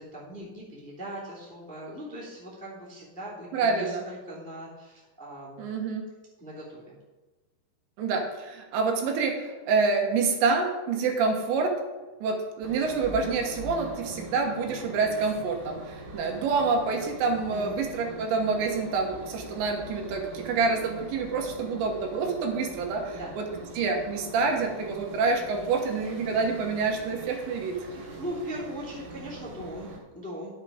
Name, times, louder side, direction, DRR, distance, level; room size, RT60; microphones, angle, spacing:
voice 1, 0.0-5.7 6.4-7.0 17.5-17.7 23.1-23.3 27.9-30.5, equal, 5° left, -6 dB, 1.4 m, -40 dB
voice 2, 3.5-4.1 5.6-6.1 8.0-11.8 12.2-23.5 23.8-27.8, right 4 dB, 80° right, 2 dB, 3.5 m, -27 dB
sound 1, 12.6-30.0, right 1 dB, 65° right, 3.9 m, -42 dB
11.0 x 7.3 x 4.9 m, 1.2 s
omnidirectional pair, 5.1 m